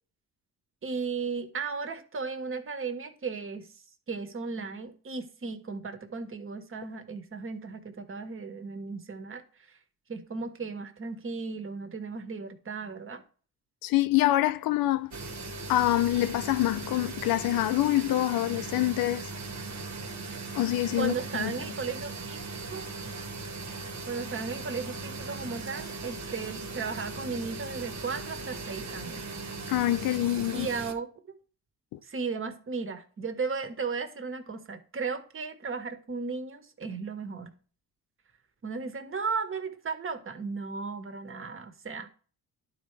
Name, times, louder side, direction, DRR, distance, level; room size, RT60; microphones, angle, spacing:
voice 1, 0.8-3.7 4.1-9.4 10.1-13.2 20.9-22.4 22.7-22.9 24.1-29.2 30.5-31.1 32.1-37.5 38.6-42.1, right 4 dB, 35° right, 1.6 m, -35 dB
voice 2, 13.8-15.1 15.7-19.3 20.5-21.1 21.4-21.5 29.7-30.7 31.9-32.0, left 15 dB, 75° left, 0.6 m, -26 dB
sound 1, 15.1-30.9, right 3 dB, 50° right, 1.6 m, -39 dB
11.5 x 4.8 x 3.3 m
cardioid pair, 80°, 35 cm